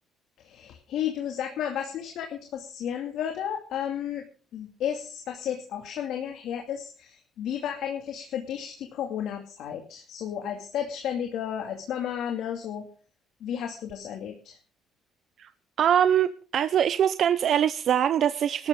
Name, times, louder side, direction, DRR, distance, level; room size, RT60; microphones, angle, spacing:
voice 1, 0.4-4.2 4.5-12.9 13.4-14.6, left 9 dB, 70° left, 3 dB, 2.4 m, -33 dB
voice 2, 15.8-18.7, right 9 dB, 50° right, 11 dB, 0.7 m, -23 dB
19.5 x 13.0 x 3.8 m, 0.37 s
cardioid pair, 145°, 0 cm